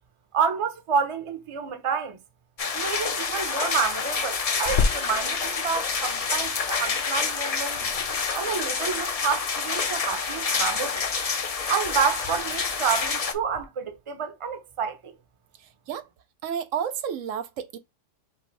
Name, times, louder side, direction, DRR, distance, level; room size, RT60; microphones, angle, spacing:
voice 1, 0.3-2.2 2.7-7.8 8.3-11.1 11.7-15.1, right 6 dB, 30° right, 0.6 m, -29 dB
sound 1, 2.6-13.3, left 5 dB, 45° left, 0.5 m, -28 dB
Water tap faucet / Sink (filling or washing), 4.7-13.6, left 5 dB, 65° left, 1.1 m, -34 dB
voice 2, 16.4-17.8, right 8 dB, 85° right, 1.0 m, -30 dB
5.8 x 2.6 x 3.2 m
omnidirectional pair, 1.3 m